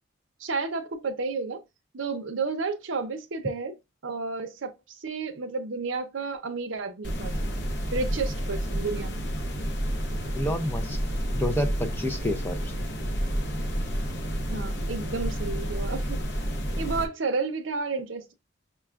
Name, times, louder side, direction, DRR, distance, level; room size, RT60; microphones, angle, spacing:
voice 1, 0.4-1.6 1.9-3.8 4.0-7.5 7.9-9.2 14.5-16.2 16.8-18.3, right 4 dB, 75° right, 0.6 m, -31 dB
sound 1, 7.0-17.1, equal, 60° left, 0.7 m, -30 dB
voice 2, 10.3-11.0 11.3-12.8, left 1 dB, 10° left, 0.4 m, -29 dB
5.6 x 2.3 x 2.3 m
head